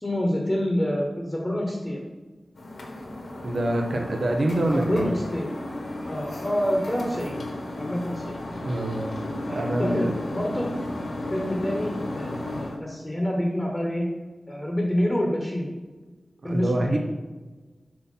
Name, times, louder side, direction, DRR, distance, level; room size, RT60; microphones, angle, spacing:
voice 1, 0.0-2.0 4.7-5.5 6.0-7.4 7.8-8.4 9.4-10.7 11.3-14.1 14.5-15.7 16.4-17.0, equal, 20° left, 0 dB, 1.1 m, -27 dB
sound 1, 2.6-12.8, left 1 dB, 75° left, 1.2 m, -34 dB
voice 2, 3.4-5.1 8.6-9.0 9.5-10.1 16.4-17.0, right 1 dB, 65° right, 2 dB, 0.8 m, -25 dB
7.5 x 2.9 x 5.5 m, 1.3 s
wide cardioid pair, 90°, 0 cm